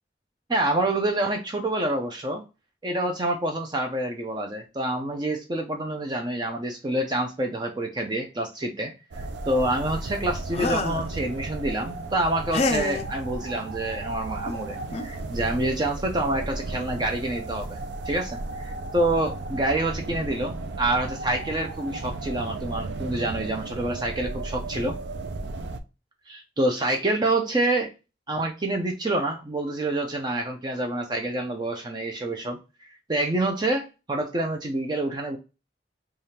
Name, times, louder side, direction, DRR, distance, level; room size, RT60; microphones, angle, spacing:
voice 1, 0.5-2.4 2.8-17.8 18.1-25.0 26.3-27.9 28.3-32.6 32.8-35.4, right 1 dB, 25° right, 3 dB, 0.5 m, -27 dB
sound 1, 9.1-25.8, right 2 dB, 85° right, 0.5 m, -34 dB
sound 2, 10.5-11.1 12.5-13.1 14.5-14.6 14.9-15.2, left 3 dB, 35° left, 0.4 m, -27 dB
3.4 x 2.4 x 4.1 m, 0.29 s
head